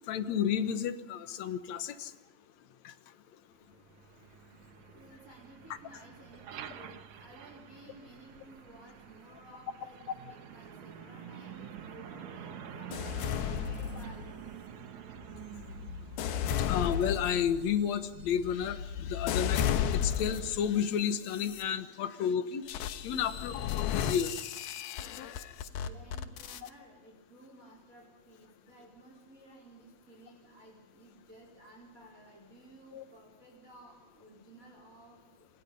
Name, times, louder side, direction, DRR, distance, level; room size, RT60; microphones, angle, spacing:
voice 1, 0.1-2.1 2.9-3.0 16.7-22.6 23.0-23.5 23.9-24.3 32.9-33.0, left 8 dB, 60° left, 11 dB, 2.1 m, -31 dB
Truck, 3.6-21.3, right 9 dB, 60° right, 2.4 m, -49 dB
voice 2, 4.6-14.5 23.2-23.9 25.7-35.5, right 1 dB, 20° right, 0 dB, 4.6 m, -55 dB
sound 1, 12.9-14.5 15.2-20.7 21.3-21.6 22.7-26.7, left 9 dB, 85° left, 3.1 m, -34 dB
27.0 x 27.0 x 5.4 m, 1.1 s
omnidirectional pair, 4.3 m